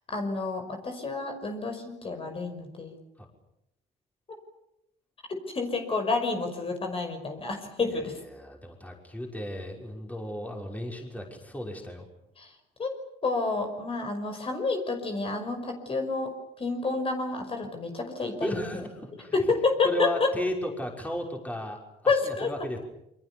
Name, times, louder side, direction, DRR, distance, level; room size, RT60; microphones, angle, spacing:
voice 1, 0.1-3.0 5.5-8.2 12.4-12.5 12.8-12.9 13.2-18.6 19.3-20.3 22.1-22.5, left 3 dB, 35° left, 4 dB, 5.6 m, -29 dB
voice 2, 8.3-12.1 18.2-19.3 19.8-22.8, left 1 dB, 10° left, 1 dB, 5.8 m, -35 dB
28.5 x 25.0 x 7.1 m, 0.83 s
cardioid pair, 110°, 17 cm